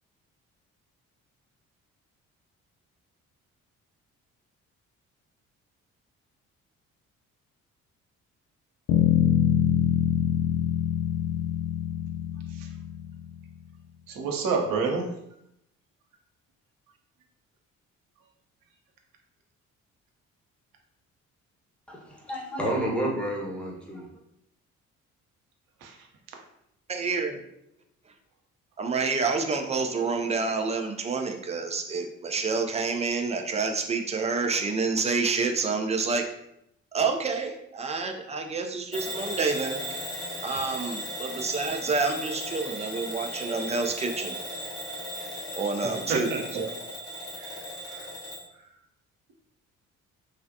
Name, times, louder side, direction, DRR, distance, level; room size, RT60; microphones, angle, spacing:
Bass guitar, 8.9-13.2, left 9 dB, 75° left, 0.5 m, -25 dB
voice 1, 14.1-15.1 25.8-26.0 45.8-46.6 47.4-48.1, right 4 dB, 55° right, 2 dB, 0.7 m, -30 dB
voice 2, 21.9-24.1, right 1 dB, 5° left, -2 dB, 0.9 m, -30 dB
voice 3, 26.9-27.4 28.8-36.2 36.9-39.8 40.4-44.3 45.5-46.7, right 4 dB, 20° right, 4 dB, 0.4 m, -28 dB
Bell / Alarm, 38.9-48.5, equal, 35° left, 1.2 m, -36 dB
3.1 x 2.4 x 2.6 m, 0.79 s
hypercardioid pair, 45°, 39 cm